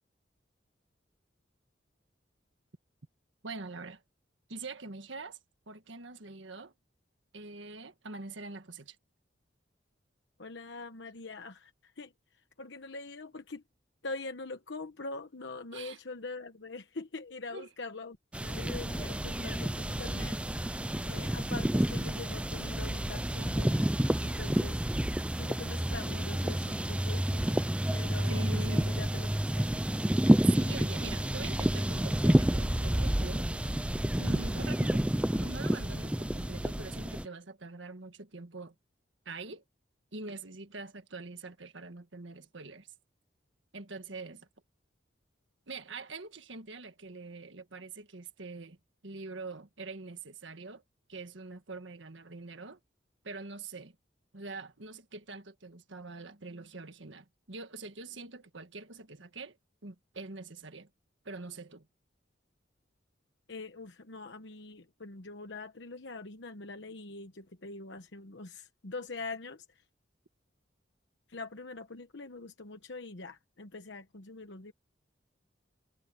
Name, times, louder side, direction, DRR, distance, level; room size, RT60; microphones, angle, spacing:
voice 1, 3.4-4.0 4.5-5.4 5.7-6.7 7.3-9.0 15.7-16.0 17.5-17.7 28.3-28.9 30.5-33.5 34.2-35.0 35.3-38.7 39.2-39.6 40.1-42.9 43.7-44.5 45.7-48.8 49.0-50.8 51.1-52.8 53.2-53.9 54.3-59.6 59.8-60.9 61.2-61.9, right 3 dB, 80° right, 1.6 m, -44 dB
voice 2, 10.4-11.7 12.0-12.1 12.6-13.6 14.0-18.2 18.4-20.4 21.1-23.9 24.2-24.8 25.4-27.7 27.9-29.7 63.5-69.6 71.3-74.7, left 3 dB, 70° left, 1.1 m, -43 dB
sound 1, 18.3-37.3, right 1 dB, 5° right, 0.4 m, -29 dB
head